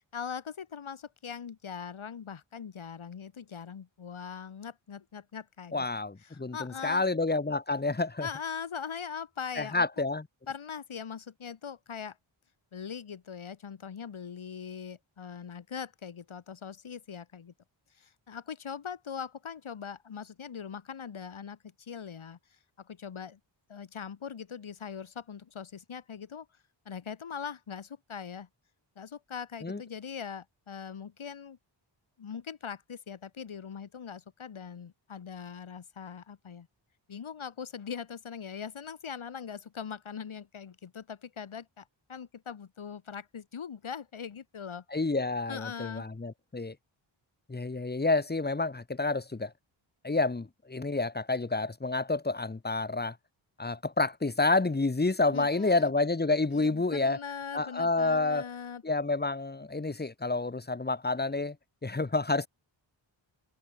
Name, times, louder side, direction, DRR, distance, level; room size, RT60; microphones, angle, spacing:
voice 1, 0.0-5.9 6.2-7.0 8.2-9.8 10.5-12.2 12.7-17.5 17.9-23.4 23.7-26.5 26.8-28.5 29.0-31.6 32.2-36.7 37.1-44.8 45.5-46.1 55.3-55.9 56.5-58.8, left 7 dB, 80° left, 6.1 m, -41 dB
voice 2, 5.7-8.3 9.6-10.2 29.6-29.8 44.9-46.8 47.5-49.5 50.0-53.2 53.6-57.2 57.5-58.4 58.8-61.6 61.8-62.5, left 3 dB, 20° left, 1.7 m, -29 dB
wide cardioid pair, 175°, 47 cm